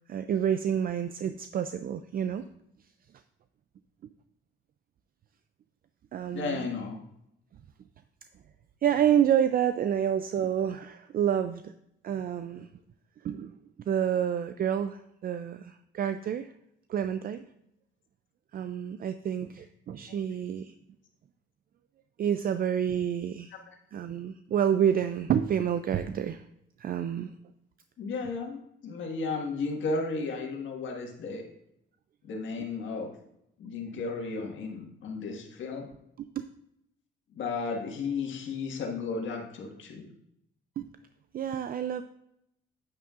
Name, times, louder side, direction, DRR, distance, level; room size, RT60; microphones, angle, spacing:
voice 1, 0.1-2.5 6.1-6.7 8.8-11.7 12.0-12.7 13.2-13.6 13.9-16.5 16.9-17.5 18.5-20.7 22.2-23.5 23.9-26.4 26.8-27.3 33.9-34.0 36.4-36.5 40.8-40.9 41.3-42.0, right 9 dB, 50° right, 10 dB, 0.4 m, -28 dB
voice 2, 6.3-7.0 28.0-31.4 32.2-33.1 33.6-35.9 37.3-40.0, left 4 dB, 75° left, 1 dB, 1.7 m, -34 dB
9.1 x 8.7 x 2.5 m, 0.78 s
cardioid pair, 90°, 20 cm